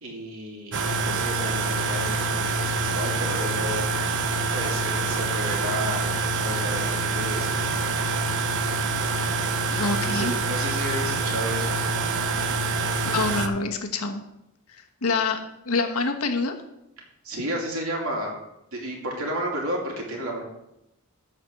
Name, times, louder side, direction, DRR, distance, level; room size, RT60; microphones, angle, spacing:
voice 1, 0.0-3.9 4.5-7.6 9.9-11.8 17.2-18.3 18.7-20.4, equal, 75° right, -1 dB, 2.8 m, -32 dB
sound 1, 0.7-13.5, right 3 dB, 60° right, 0.9 m, -26 dB
voice 2, 9.7-10.3 13.1-14.2 14.8-15.4 15.6-16.5, left 3 dB, 80° left, 4 dB, 1.3 m, -26 dB
13.0 x 4.3 x 6.5 m, 0.87 s
head